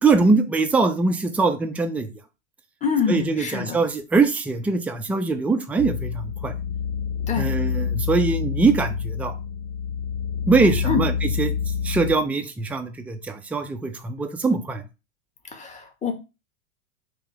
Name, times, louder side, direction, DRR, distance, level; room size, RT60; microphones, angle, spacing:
voice 1, 0.0-2.1 3.1-6.5 7.4-9.3 10.4-11.5 11.8-14.8, right 4 dB, 5° right, 6 dB, 0.4 m, -22 dB
voice 2, 2.8-3.8 7.3-7.5 10.8-11.0 15.5-16.1, left 6 dB, 20° left, 5 dB, 1.1 m, -25 dB
sound 1, 5.8-12.2, left 7 dB, 55° left, 0.5 m, -27 dB
3.7 x 2.9 x 4.6 m, 0.28 s
hypercardioid pair, 100°, 39 cm